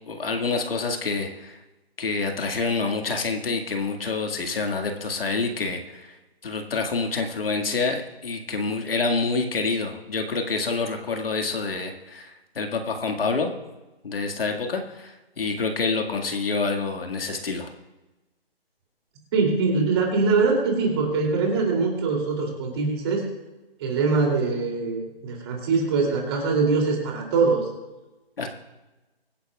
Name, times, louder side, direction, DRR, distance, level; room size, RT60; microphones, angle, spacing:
voice 1, 0.1-1.6 2.0-6.2 6.4-13.5 14.0-17.7 28.4-28.5, left 4 dB, 65° left, 3 dB, 2.0 m, -27 dB
voice 2, 19.3-23.2 23.8-27.7, right 4 dB, 25° right, 0 dB, 2.8 m, -23 dB
24.0 x 10.5 x 2.4 m, 1.1 s
hypercardioid pair, 165°, 31 cm